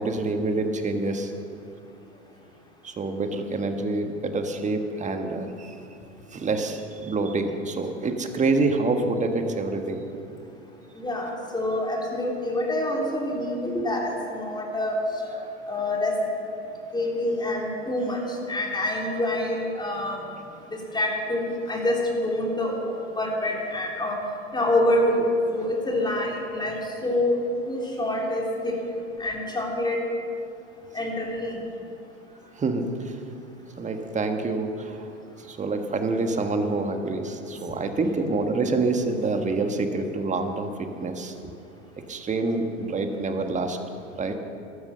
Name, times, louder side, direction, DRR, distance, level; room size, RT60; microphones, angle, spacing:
voice 1, 0.0-1.6 2.8-5.8 6.3-10.1 15.3-15.6 20.2-20.3 32.5-33.2 33.8-35.1 35.4-41.3 42.0-43.8 44.2-44.4, right 3 dB, 20° right, 6 dB, 1.5 m, -27 dB
voice 2, 11.0-15.0 15.7-16.1 16.9-18.2 18.5-20.2 20.9-24.2 24.5-25.3 25.5-26.7 27.0-27.4 27.7-28.8 29.2-30.0 30.9-31.6, left 1 dB, 10° left, -1 dB, 3.3 m, -26 dB
13.0 x 12.5 x 6.8 m, 2.7 s
hypercardioid pair, 100°, 36 cm